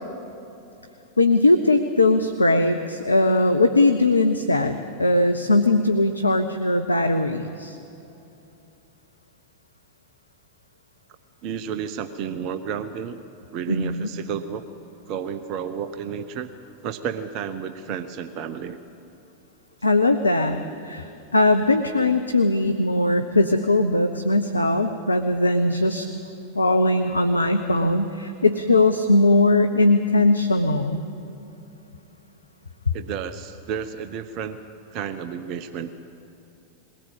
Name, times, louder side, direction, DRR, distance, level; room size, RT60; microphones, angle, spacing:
voice 1, 1.2-7.8 13.7-14.1 19.8-21.1 21.3-26.1 26.6-31.0, left 2 dB, 80° left, 8 dB, 0.7 m, -20 dB
voice 2, 11.4-13.2 13.5-14.7 15.1-16.5 16.8-18.8 32.9-34.6 34.9-36.0, right 7 dB, 40° right, 11 dB, 0.8 m, -31 dB
21.5 x 18.0 x 7.4 m, 2.9 s
figure-of-eight pair, 90°, 0 cm